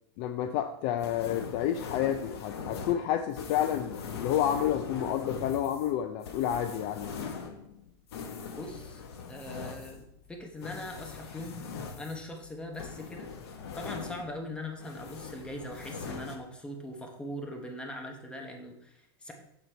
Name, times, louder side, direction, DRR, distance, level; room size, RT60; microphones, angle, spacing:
voice 1, 0.2-7.1, left 10 dB, 45° left, 9 dB, 0.4 m, -30 dB
sound 1, 1.0-14.5 14.8-16.4, left 5 dB, 85° left, 1.0 m, -41 dB
voice 2, 8.6-9.0 9.3-13.3 13.7-19.3, left 1 dB, 10° left, 2 dB, 1.0 m, -41 dB
6.7 x 4.0 x 4.4 m, 0.76 s
supercardioid pair, 145°, 13 cm